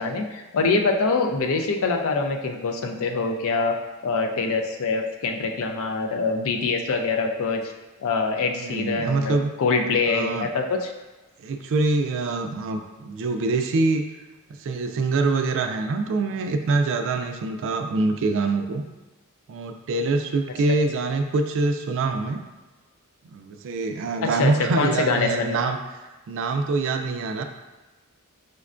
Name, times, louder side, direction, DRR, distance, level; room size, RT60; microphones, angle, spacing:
voice 1, 0.0-3.8 4.0-7.6 8.0-10.9 24.2-25.6, left 4 dB, 65° left, 4 dB, 0.4 m, -24 dB
voice 2, 8.5-9.5 10.1-10.5 11.4-14.0 14.6-18.8 19.5-22.4 23.3-26.0 26.3-27.4, right 3 dB, 60° right, 6 dB, 0.3 m, -25 dB
5.0 x 2.2 x 2.4 m, 1.2 s
head